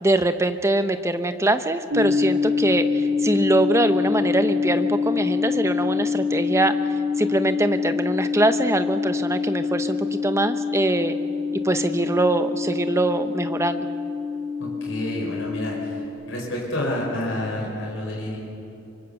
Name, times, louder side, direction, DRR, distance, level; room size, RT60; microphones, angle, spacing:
voice 1, 0.0-6.7 7.2-11.1 11.6-13.9, right 2 dB, 15° right, 9 dB, 0.9 m, -23 dB
sound 1, 1.9-16.1, left 5 dB, 85° right, 2.5 m, -25 dB
voice 2, 14.6-16.0 16.3-18.4, left 1 dB, 60° left, -2 dB, 5.3 m, -29 dB
25.0 x 24.0 x 7.1 m, 2.9 s
head